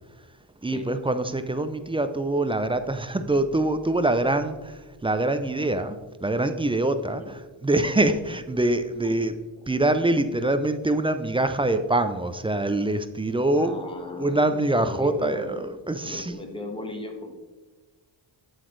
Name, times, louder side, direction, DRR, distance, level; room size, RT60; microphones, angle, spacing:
voice 1, 0.6-9.4 9.7-13.7 14.2-16.4, right 2 dB, 15° right, 9 dB, 0.3 m, -24 dB
voice 2, 13.5-15.5 16.0-17.3, left 2 dB, 10° left, 3 dB, 1.2 m, -36 dB
7.9 x 7.8 x 3.1 m, 1.3 s
wide cardioid pair, 110°, 48 cm